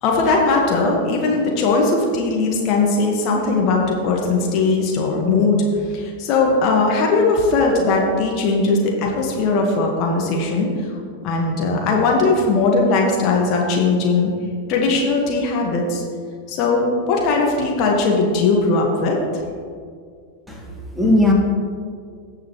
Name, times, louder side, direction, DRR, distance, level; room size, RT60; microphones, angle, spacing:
voice 1, 0.0-5.6 5.9-10.7 11.2-14.3 14.7-16.0 16.5-19.2, left 3 dB, 40° left, 0 dB, 1.6 m, -19 dB
voice 2, 20.5-21.3, left 1 dB, ahead, -1 dB, 1.8 m, -18 dB
18.0 x 6.8 x 3.2 m, 2.1 s
figure-of-eight pair, 90°, 0 cm